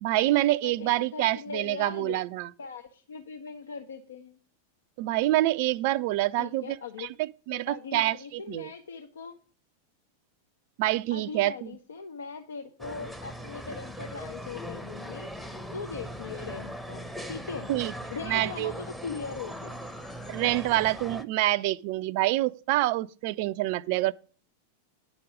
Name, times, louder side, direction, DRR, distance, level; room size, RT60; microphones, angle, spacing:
voice 1, 0.0-2.5 5.0-7.1 7.5-8.7 10.8-11.7 17.7-17.9 18.2-18.7 20.3-24.1, right 16 dB, 45° right, 0.4 m, -26 dB
voice 2, 0.6-2.2 2.6-4.4 6.4-7.1 7.5-9.3 11.1-17.7 18.1-19.8, left 5 dB, 65° left, 0.7 m, -40 dB
sound 1, 12.8-21.2, equal, ahead, 0.8 m, -39 dB
10.0 x 6.0 x 5.0 m
figure-of-eight pair, 90°, 0 cm